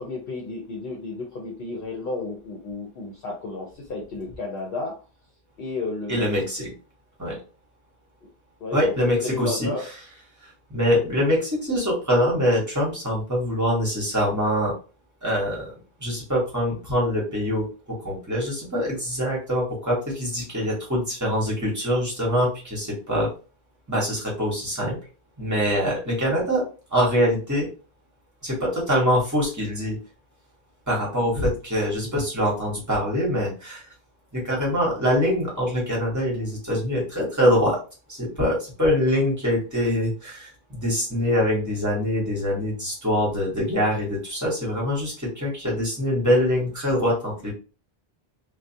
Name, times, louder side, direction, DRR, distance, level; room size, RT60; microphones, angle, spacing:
voice 1, 0.0-5.0 5.6-6.3 8.6-9.8, left 3 dB, 70° left, -1 dB, 0.8 m, -32 dB
voice 2, 6.1-6.7 7.2-7.4 8.7-9.7 10.7-14.7 15.2-15.7 16.0-23.3 23.9-25.0 25.4-26.6 26.9-27.7 28.4-30.0 30.9-33.8 34.3-37.8 38.1-47.5, equal, 20° right, -4 dB, 1.0 m, -24 dB
2.3 x 2.1 x 2.6 m, 0.34 s
omnidirectional pair, 1.0 m